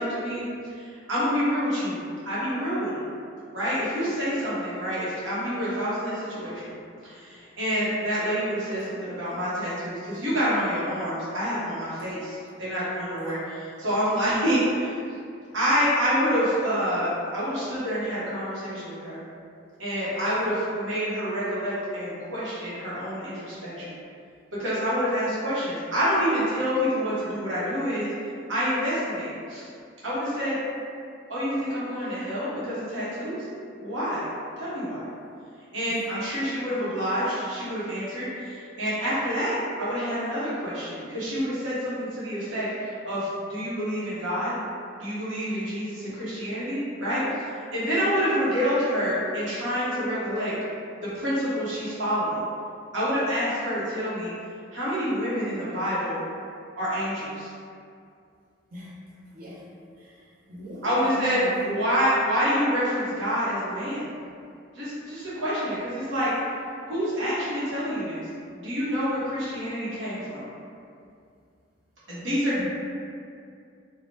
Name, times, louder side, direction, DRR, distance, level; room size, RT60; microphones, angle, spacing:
voice 1, 0.0-2.0 2.3-3.0 3.5-6.7 7.0-15.0 15.5-19.2 19.8-23.9 24.6-28.1 28.5-29.7 30.0-30.6 31.3-33.4 33.8-34.3 34.6-35.1 35.7-44.5 45.0-47.4 47.7-50.5 51.0-52.4 52.9-54.3 54.7-56.2 56.8-57.5 60.8-64.1 64.7-66.3 66.9-68.2 68.5-70.4 72.2-72.7, equal, 75° right, -10 dB, 1.0 m, -27 dB
voice 2, 59.3-59.6 60.0-61.6 72.1-72.7, equal, 45° right, -7 dB, 0.5 m, -40 dB
2.7 x 2.0 x 3.1 m, 2.4 s
head